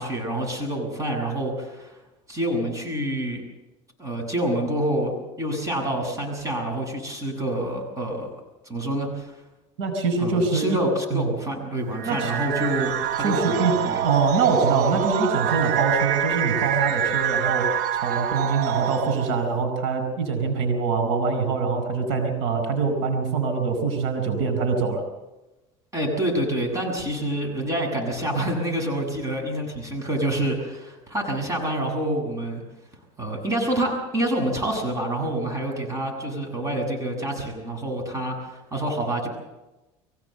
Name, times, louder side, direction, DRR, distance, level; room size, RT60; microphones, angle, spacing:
voice 1, 0.0-1.9 2.3-3.4 4.0-5.1 5.4-8.3 8.7-9.3 10.2-14.0 25.9-32.6 33.2-39.3, right 1 dB, 20° right, 2 dB, 7.7 m, -27 dB
voice 2, 9.8-10.8 11.1-11.3 12.1-12.3 13.2-13.8 14.0-17.7 18.0-25.0, right 4 dB, 80° right, 7 dB, 4.7 m, -24 dB
sound 1, 11.9-19.5, right 10 dB, 60° right, 1.0 m, -26 dB
23.5 x 16.5 x 8.0 m, 1.0 s
supercardioid pair, 115°, 15 cm